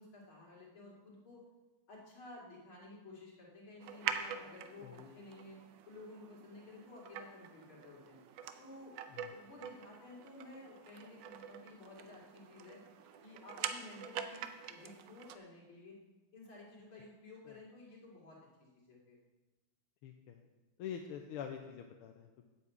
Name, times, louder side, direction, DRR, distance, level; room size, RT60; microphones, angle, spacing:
voice 1, 0.0-1.4 1.9-5.6 5.9-8.2 8.6-8.9 9.3-12.8 13.2-16.0 16.3-19.2, left 2 dB, 70° left, -3 dB, 3.4 m, -54 dB
sound 1, 3.8-15.4, right 8 dB, 70° right, 1.2 m, -45 dB
voice 2, 4.8-5.2 9.1-9.3 17.4-17.6 20.0-20.5 20.8-22.5, left 8 dB, 90° left, 4 dB, 1.6 m, -46 dB
8.2 x 6.1 x 8.1 m, 1.1 s
omnidirectional pair, 2.3 m